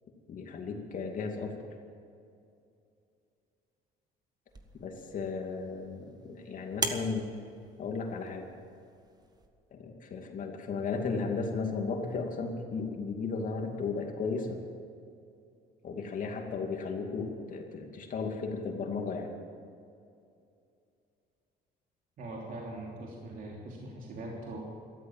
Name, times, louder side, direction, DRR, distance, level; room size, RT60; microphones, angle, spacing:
voice 1, 0.3-1.6 4.8-7.3 7.8-8.5 9.7-14.6 15.8-19.3, left 4 dB, 50° left, 3 dB, 2.5 m, -35 dB
sound 1, 4.5-9.5, right 3 dB, 25° right, 1.6 m, -41 dB
voice 2, 22.2-24.6, right 2 dB, 55° right, -2 dB, 3.3 m, -41 dB
13.5 x 13.5 x 7.5 m, 2.5 s
cardioid pair, 110°, 17 cm